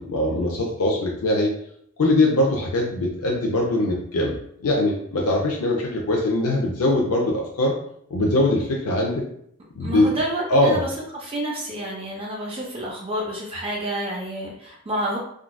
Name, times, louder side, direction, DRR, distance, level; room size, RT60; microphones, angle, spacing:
voice 1, 0.0-1.5 2.0-7.7 8.1-9.2 9.8-10.2 10.5-10.8, left 1 dB, 85° left, -1 dB, 0.5 m, -22 dB
voice 2, 9.8-15.2, right 1 dB, 25° right, -2 dB, 0.5 m, -29 dB
3.7 x 2.3 x 2.2 m, 0.69 s
head